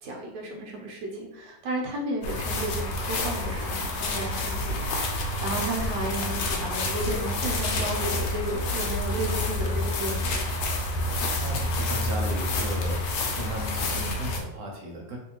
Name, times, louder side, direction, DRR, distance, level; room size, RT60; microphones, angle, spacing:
voice 1, 0.0-10.3, right 1 dB, 80° right, -1 dB, 1.4 m, -33 dB
sound 1, 2.2-14.4, left 2 dB, 80° left, 1.2 m, -28 dB
voice 2, 11.4-13.1 13.3-15.2, right 1 dB, 65° right, -1 dB, 1.0 m, -35 dB
3.2 x 2.7 x 2.8 m, 0.95 s
omnidirectional pair, 1.9 m